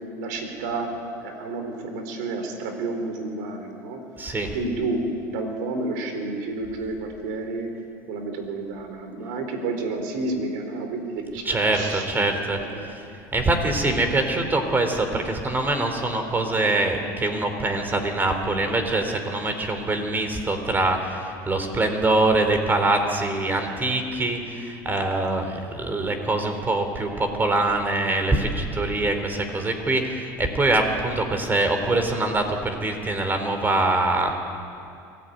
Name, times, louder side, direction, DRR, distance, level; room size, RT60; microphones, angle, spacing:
voice 1, 0.2-0.9 1.2-4.0 4.5-7.7 8.1-12.0 12.6-12.9, right 3 dB, 75° right, 5 dB, 4.2 m, -30 dB
voice 2, 4.2-4.5 11.4-34.3, right 2 dB, 20° right, 6 dB, 3.9 m, -24 dB
23.5 x 17.0 x 9.5 m, 2.4 s
supercardioid pair, 100°, 9 cm